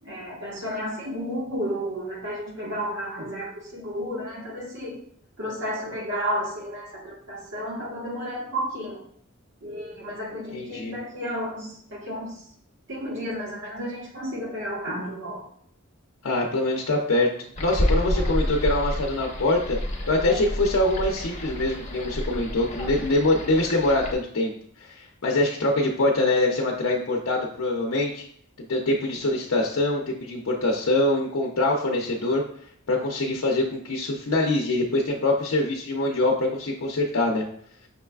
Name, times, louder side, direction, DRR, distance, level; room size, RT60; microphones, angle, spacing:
voice 1, 0.0-5.0 5.4-9.1 9.6-12.4 12.9-15.5, equal, 65° right, -3 dB, 1.4 m, -32 dB
voice 2, 10.5-10.9 16.2-19.8 20.1-24.5 24.8-28.2 28.6-32.4 32.9-37.4, left 2 dB, 70° left, -1 dB, 0.6 m, -24 dB
sound 1, 17.6-24.1, left 1 dB, 35° left, 0.8 m, -29 dB
5.9 x 3.2 x 2.3 m, 0.63 s
head